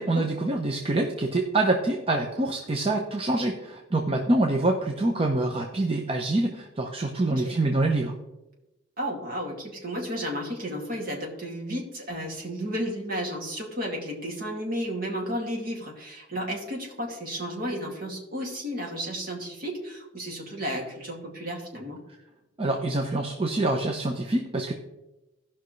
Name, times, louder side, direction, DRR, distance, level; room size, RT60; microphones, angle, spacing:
voice 1, 0.0-8.2 22.6-24.7, right 2 dB, 30° right, 2 dB, 0.7 m, -26 dB
voice 2, 7.2-7.6 9.0-22.0, equal, 50° right, -1 dB, 2.3 m, -33 dB
16.5 x 5.7 x 3.2 m, 0.98 s
head